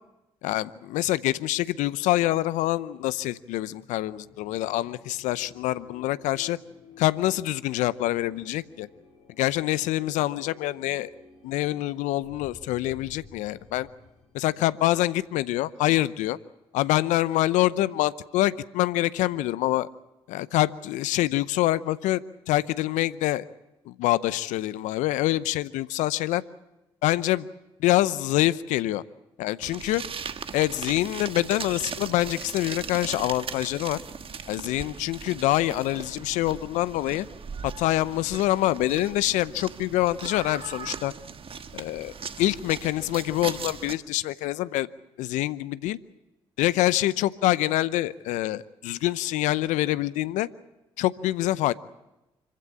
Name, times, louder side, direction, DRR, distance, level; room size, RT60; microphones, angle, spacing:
voice 1, 0.4-6.6 7.0-8.9 9.4-11.1 11.4-13.9 14.3-16.4 16.7-19.9 20.3-22.2 22.5-23.4 23.9-26.4 27.0-27.5 27.8-29.0 29.4-30.0 30.5-34.0 34.5-37.3 37.6-41.1 41.7-44.9 45.2-46.0 46.6-50.5 51.0-51.7, left 15 dB, 75° left, 17 dB, 0.7 m, -25 dB
sound 1, 3.0-16.4, left 4 dB, 60° left, 7.0 m, -54 dB
sound 2, 29.6-43.9, right 6 dB, 45° right, 1.4 m, -39 dB
25.5 x 15.5 x 8.7 m, 0.98 s
hypercardioid pair, 50°, 13 cm